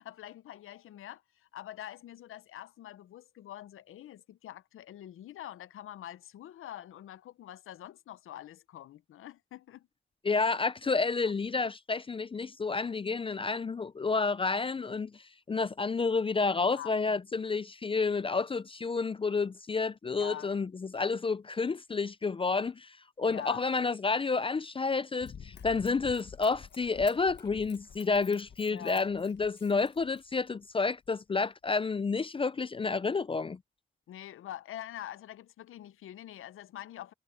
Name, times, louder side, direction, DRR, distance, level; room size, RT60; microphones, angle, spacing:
voice 1, 0.0-9.9 10.4-10.5 16.6-16.9 20.2-20.5 23.3-23.6 28.7-29.0 34.1-37.1, left 12 dB, 85° left, 0.6 m, -45 dB
voice 2, 10.2-33.6, left 4 dB, 25° left, 0.4 m, -30 dB
Run, 25.2-30.5 31.1-31.2, left 7 dB, 55° left, 1.4 m, -50 dB
cardioid pair, 90°, 21 cm